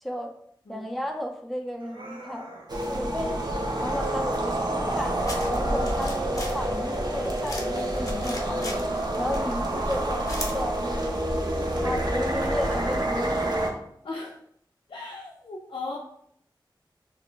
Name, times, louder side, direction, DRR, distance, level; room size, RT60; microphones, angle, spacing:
voice 1, 0.0-0.3 0.7-2.5 2.9-5.2 5.5-8.7 9.2-11.2 11.7-13.6, equal, ahead, 3 dB, 0.4 m, -33 dB
sound 1, 1.8-2.7 3.4-4.2 5.4-6.4 7.7-8.8 9.6-10.5 11.3-12.3, right 1 dB, 85° right, 0.7 m, -42 dB
sound 2, 2.7-13.7, right 1 dB, 55° right, 0.5 m, -28 dB
sound 3, 4.9-10.6, left 1 dB, 40° left, 0.7 m, -39 dB
voice 2, 14.0-14.4 14.9-16.0, left 3 dB, 90° left, -3 dB, 0.4 m, -37 dB
2.3 x 2.2 x 3.8 m, 0.67 s
wide cardioid pair, 70°, 9 cm